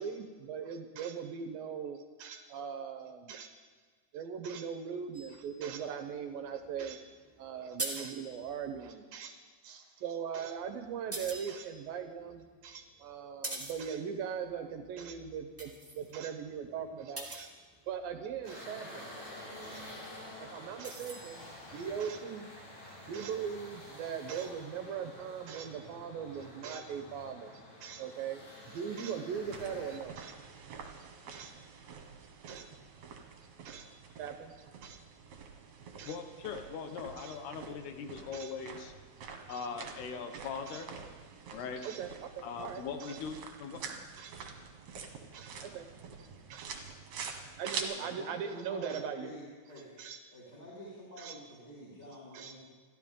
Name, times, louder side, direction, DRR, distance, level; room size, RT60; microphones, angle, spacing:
voice 1, 0.0-3.5 4.1-7.0 7.4-9.4 9.6-17.5 17.9-19.1 19.6-19.8 20.4-22.5 22.8-28.4 28.7-30.4 31.3-31.5 32.5-32.7 33.6-33.9 34.2-35.0 36.0-36.2 37.2-37.4 38.3-38.5 39.5-39.7 40.7-40.8 41.8-43.2 44.2-44.4 45.3-45.9 46.5-46.7 47.6-49.3 49.8-50.2 51.2-51.4 52.3-52.6, right 7 dB, 75° right, 7 dB, 2.3 m, -40 dB
sound 1, 5.1-8.9 10.3-18.4 19.7-22.1, right 2 dB, 5° right, 1.2 m, -46 dB
sound 2, 18.4-30.0, left 1 dB, 50° left, 6.9 m, -49 dB
sound 3, 29.3-47.8, right 6 dB, 55° right, 2.4 m, -47 dB
voice 2, 36.0-38.9 39.5-40.9 41.5-41.9 42.4-43.8, left 5 dB, 75° left, 6 dB, 3.1 m, -40 dB
voice 3, 47.9-49.4 49.7-49.8 50.3-52.6, equal, 15° left, -7 dB, 4.7 m, -48 dB
29.0 x 13.0 x 3.7 m, 1.5 s
omnidirectional pair, 4.8 m